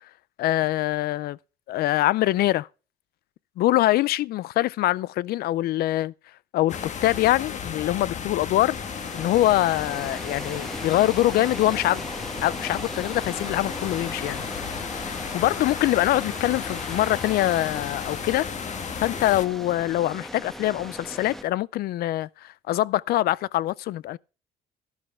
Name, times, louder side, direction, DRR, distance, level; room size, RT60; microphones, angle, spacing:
voice 1, 0.4-1.4 1.7-2.7 3.6-6.1 6.5-8.8 9.1-12.1 12.4-14.7 15.3-18.5 19.0-24.2, left 15 dB, 65° left, 0.4 m, -24 dB
sound 1, 6.7-19.5, left 7 dB, 45° left, 1.3 m, -34 dB
sound 2, 8.5-21.4, equal, ahead, 1.1 m, -39 dB
12.5 x 11.0 x 3.3 m
cardioid pair, 110°, 17 cm